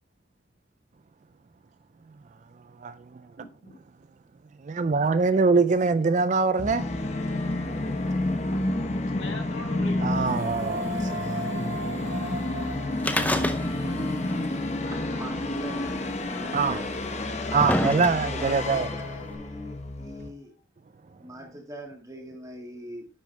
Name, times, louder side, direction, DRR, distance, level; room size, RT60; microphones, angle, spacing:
voice 1, 3.3-3.8 5.3-5.4 6.1-6.3 8.3-10.6 14.5-15.2, left 2 dB, 70° left, 1.8 m, -45 dB
voice 2, 4.6-6.8 10.0-11.1 11.5-11.6 16.5-16.8 17.5-18.9, right 4 dB, 35° right, 0.3 m, -23 dB
Musical instrument, 6.6-20.3, left 2 dB, 35° left, 0.9 m, -30 dB
Female singing, 10.1-15.3, right 2 dB, 75° right, 1.1 m, -39 dB
sound 1, 13.0-14.0 14.3-14.4 15.4-15.5 16.4-16.5 17.1-18.5 19.3-19.4, left 1 dB, 10° left, 0.6 m, -27 dB
voice 3, 13.2-14.6 14.9-16.9 18.3-20.6 21.2-23.1, equal, 15° right, 2.0 m, -42 dB
10.0 x 6.4 x 3.3 m
head